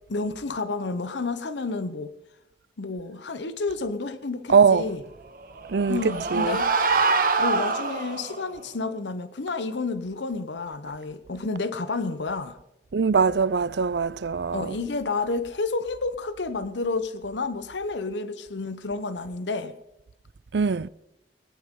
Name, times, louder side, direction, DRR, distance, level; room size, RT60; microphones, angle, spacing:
voice 1, 0.1-2.1 2.8-5.0 5.9-6.7 7.4-12.6 14.5-19.7, left 3 dB, 90° left, 0.9 m, -30 dB
voice 2, 4.5-4.9 5.7-6.6 12.9-14.8 20.5-20.9, right 5 dB, 75° right, 0.5 m, -22 dB
sound 1, 5.4-8.4, right 4 dB, 50° right, 1.6 m, -24 dB
20.5 x 18.0 x 3.8 m
head